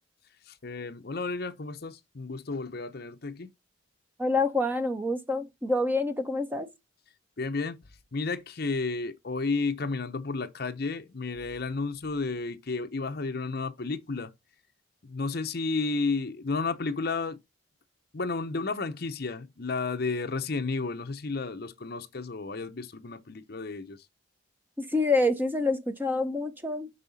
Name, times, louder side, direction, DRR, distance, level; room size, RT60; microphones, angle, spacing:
voice 1, 0.5-3.5 7.4-7.8 8.1-14.3 15.0-17.4 18.1-24.0, left 3 dB, 50° left, 0.7 m, -32 dB
voice 2, 4.2-6.7 24.8-26.9, left 2 dB, 10° right, 0.8 m, -27 dB
5.5 x 5.4 x 4.0 m
head